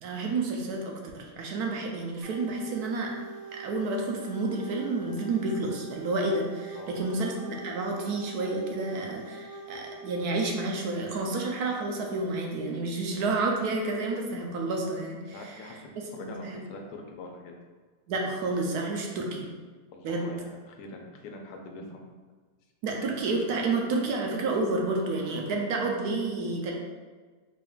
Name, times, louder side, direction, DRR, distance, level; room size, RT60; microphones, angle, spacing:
voice 1, 0.0-3.1 3.5-15.8 16.2-16.6 18.1-19.5 20.0-20.3 22.8-26.7, right 3 dB, 70° right, 1 dB, 1.1 m, -30 dB
sound 1, 2.2-10.6, right 3 dB, 50° right, 1.4 m, -44 dB
voice 2, 6.7-7.2 15.3-17.5 19.9-22.0, left 2 dB, 85° left, 2 dB, 1.2 m, -44 dB
4.1 x 3.5 x 2.3 m, 1.4 s
omnidirectional pair, 1.8 m